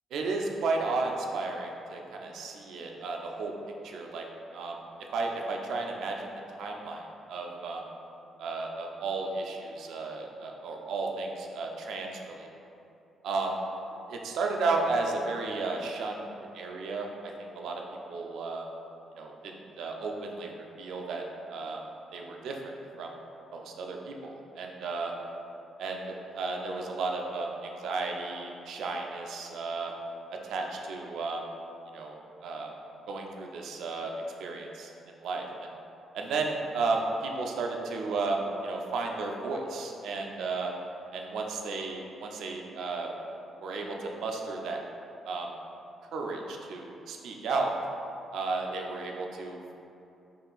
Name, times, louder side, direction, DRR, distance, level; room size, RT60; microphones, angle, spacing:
voice 1, 0.1-3.5 3.8-4.2 4.5-4.8 5.1-6.3 6.6-7.8 8.4-12.5 13.2-13.6 14.1-17.8 18.1-18.7 19.2-19.3 19.8-21.2 21.5-21.8 22.1-23.1 23.5-25.1 25.8-29.9 30.3-31.4 31.9-32.7 33.1-34.1 34.4-34.9 35.2-35.4 36.1-40.7 41.1-43.1 43.6-44.8 45.3-45.5 46.1-47.7 48.3-49.7, right 3 dB, 75° right, 1 dB, 0.4 m, -33 dB
3.7 x 2.4 x 3.9 m, 2.7 s
cardioid pair, 145°, 0 cm